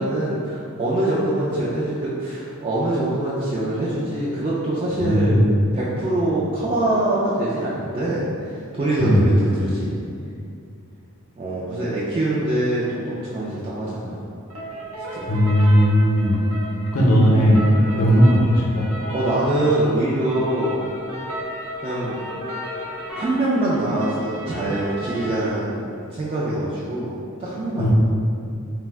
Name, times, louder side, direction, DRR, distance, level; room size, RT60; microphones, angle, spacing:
voice 1, 0.0-5.3 5.7-9.9 11.4-14.2 15.1-15.3 17.8-18.1 19.1-20.8 21.8-22.2 23.1-27.1 27.4-27.9, right 1 dB, 25° right, -8 dB, 0.3 m, -24 dB
voice 2, 4.9-5.4 9.0-9.3 15.3-16.4 16.9-17.7 18.0-18.9 27.8-27.9, equal, 70° left, -4 dB, 0.6 m, -17 dB
sound 1, 14.5-25.5, equal, 75° right, 0.6 m, -34 dB
2.4 x 2.1 x 3.3 m, 2.4 s
head